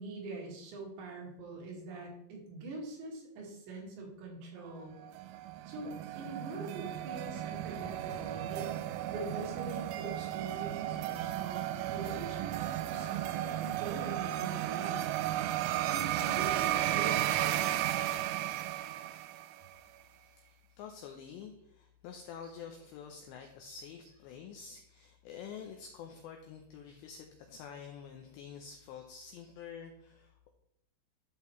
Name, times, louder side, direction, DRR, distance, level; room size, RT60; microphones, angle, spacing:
voice 1, 0.0-5.0 5.7-8.8 9.1-15.1 15.8-17.7, right 2 dB, 65° right, -2 dB, 3.8 m, -43 dB
sound 1, 5.0-19.7, right 13 dB, 90° right, 3.3 m, -34 dB
voice 2, 20.1-30.5, left 7 dB, 90° left, 3 dB, 2.5 m, -48 dB
12.5 x 5.7 x 3.1 m, 0.76 s
omnidirectional pair, 5.9 m